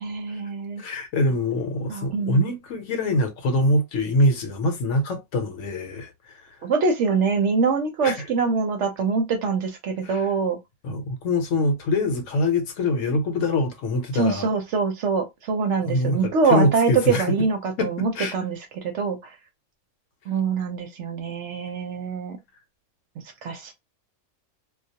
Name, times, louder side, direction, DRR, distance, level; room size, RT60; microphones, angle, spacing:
voice 1, 0.0-0.8 1.9-2.5 6.6-10.6 14.1-19.2 20.3-22.4 23.4-23.7, right 5 dB, 65° right, 0.8 m, -24 dB
voice 2, 0.8-6.4 8.0-8.3 10.0-10.3 10.8-14.5 15.8-17.4 17.8-18.3, left 1 dB, 70° left, 1.0 m, -24 dB
2.3 x 2.2 x 2.7 m
omnidirectional pair, 1.4 m